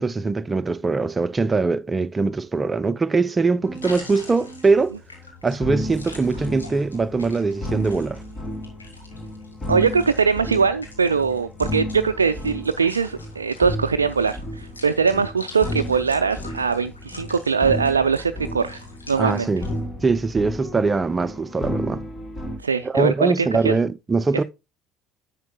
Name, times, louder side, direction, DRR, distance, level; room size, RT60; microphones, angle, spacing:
voice 1, 0.0-5.0 5.4-8.2 15.1-15.2 19.2-19.7 20.0-22.0 22.8-24.4, right 4 dB, 20° right, 0.6 m, -22 dB
sound 1, 3.6-19.8, left 3 dB, 85° left, 2.0 m, -44 dB
sound 2, 3.6-4.0 4.4-4.7 5.6-22.6, equal, 25° left, 2.0 m, -33 dB
voice 2, 9.7-19.5 22.6-23.8, right 5 dB, 80° right, 0.3 m, -22 dB
10.5 x 7.3 x 2.2 m
figure-of-eight pair, 60°, 0 cm